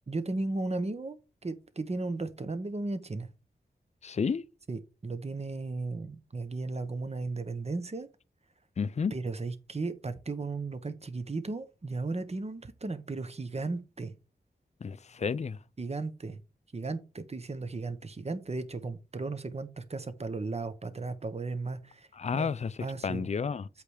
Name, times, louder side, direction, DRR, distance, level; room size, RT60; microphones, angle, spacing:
voice 1, 0.1-3.3 4.7-8.1 9.1-14.1 15.8-16.4 16.7-22.1 22.3-22.5 22.8-23.3, right 3 dB, 35° right, 1.0 m, -35 dB
voice 2, 4.0-4.5 8.8-9.2 14.8-15.6 22.1-23.7, left 5 dB, 40° left, 0.4 m, -31 dB
8.2 x 3.3 x 6.4 m
wide cardioid pair, 105°, 18 cm